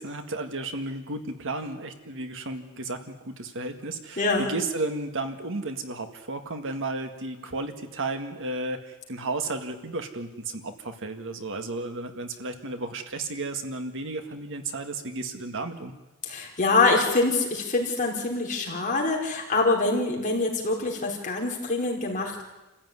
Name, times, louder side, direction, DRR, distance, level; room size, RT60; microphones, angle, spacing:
voice 1, 0.0-15.9, right 2 dB, 60° right, 7 dB, 1.8 m, -33 dB
voice 2, 4.2-4.5 16.2-22.4, left 3 dB, 35° left, -1 dB, 4.7 m, -25 dB
27.5 x 15.0 x 9.7 m, 1.1 s
head